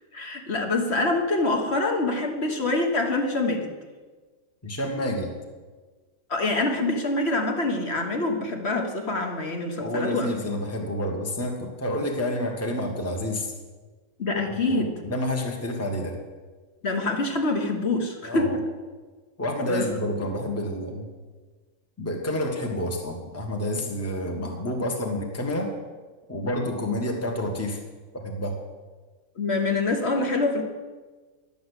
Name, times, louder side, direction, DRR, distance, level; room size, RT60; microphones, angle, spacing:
voice 1, 0.1-3.7 6.3-10.3 14.2-14.9 16.8-18.6 19.7-19.9 29.4-30.6, left 2 dB, 35° left, 3 dB, 1.3 m, -25 dB
voice 2, 4.6-5.3 9.8-13.5 14.5-16.1 18.2-18.5 19.4-21.0 22.0-25.7 26.3-27.8 28.1-28.5, left 1 dB, 10° left, 2 dB, 1.2 m, -29 dB
11.5 x 7.0 x 8.1 m, 1.4 s
omnidirectional pair, 2.2 m